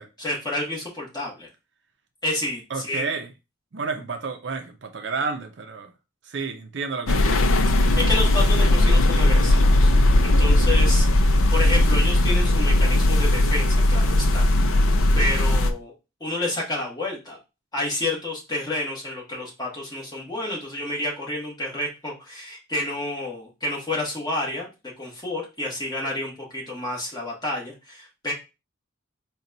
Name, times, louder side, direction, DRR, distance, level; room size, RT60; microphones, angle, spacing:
voice 1, 0.2-1.5 2.2-3.1 7.7-9.9 10.2-14.5 15.1-15.9 16.2-17.4 17.7-24.7 25.0-28.3, left 1 dB, 20° left, 1.3 m, -30 dB
voice 2, 2.7-3.3 3.7-5.9 6.3-7.5, right 4 dB, 55° right, 0.5 m, -31 dB
sound 1, 7.1-15.7, left 1 dB, 80° left, 0.5 m, -18 dB
4.1 x 2.3 x 3.9 m
head